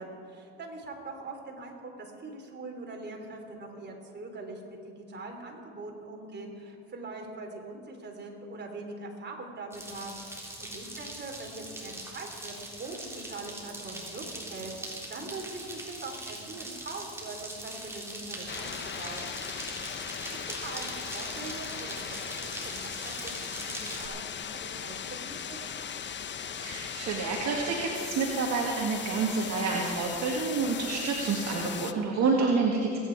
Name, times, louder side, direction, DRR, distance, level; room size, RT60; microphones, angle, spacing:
voice 1, 0.0-14.7 15.1-19.3 20.6-25.6, right 2 dB, 35° right, 1 dB, 3.5 m, -42 dB
sound 1, 9.7-24.1, right 1 dB, 10° right, 3.5 m, -41 dB
sound 2, 18.5-31.9, left 7 dB, 35° left, 0.8 m, -38 dB
voice 2, 26.6-33.0, right 4 dB, 55° right, -1 dB, 1.9 m, -28 dB
21.5 x 9.6 x 4.7 m, 2.4 s
supercardioid pair, 75°, 32 cm